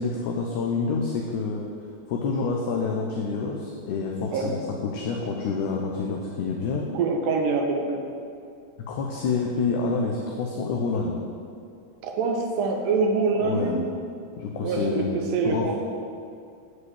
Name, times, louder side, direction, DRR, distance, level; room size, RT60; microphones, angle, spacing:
voice 1, 0.0-1.6 2.1-6.8 8.9-11.2 13.4-13.8 14.4-15.7, left 4 dB, 50° left, 0 dB, 0.9 m, -28 dB
voice 2, 6.9-8.0 12.0-13.8 14.6-15.7, right 4 dB, 45° right, 2 dB, 1.4 m, -25 dB
9.6 x 5.2 x 7.3 m, 2.5 s
figure-of-eight pair, 90°, 0 cm